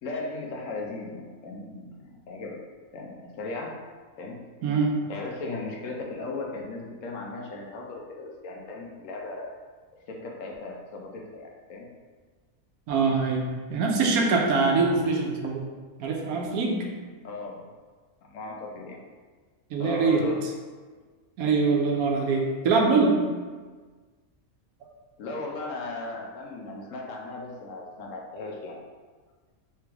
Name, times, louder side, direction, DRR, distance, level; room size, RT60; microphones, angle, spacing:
voice 1, 0.0-2.6 2.9-3.7 4.2-4.4 5.1-9.5 10.1-11.9 17.2-17.7 18.2-19.0 19.8-20.4 25.2-28.8, left 2 dB, 70° left, -1 dB, 0.9 m, -37 dB
voice 2, 4.6-5.0 12.9-15.7 16.0-16.9 19.7-20.2 21.4-23.2, right 4 dB, 90° right, 0 dB, 1.1 m, -23 dB
3.4 x 3.2 x 3.4 m, 1.5 s
omnidirectional pair, 1.5 m